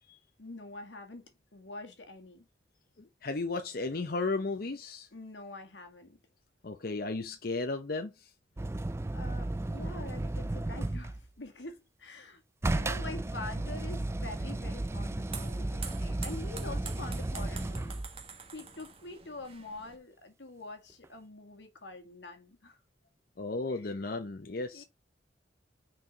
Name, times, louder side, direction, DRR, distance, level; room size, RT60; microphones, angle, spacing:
voice 1, 0.4-2.5 5.1-6.2 8.7-8.8 9.1-18.0 18.5-22.8 23.7-23.9 24.7-24.8, left 2 dB, 85° left, 1.8 m, -45 dB
voice 2, 3.0-5.1 6.6-8.3 23.4-24.8, left 3 dB, 55° left, 0.7 m, -34 dB
sound 1, 8.6-11.3 12.6-18.2 21.0-21.1, right 2 dB, 15° right, 0.3 m, -34 dB
sound 2, 14.2-20.0, right 6 dB, 35° right, 1.3 m, -47 dB
6.1 x 4.7 x 5.1 m
head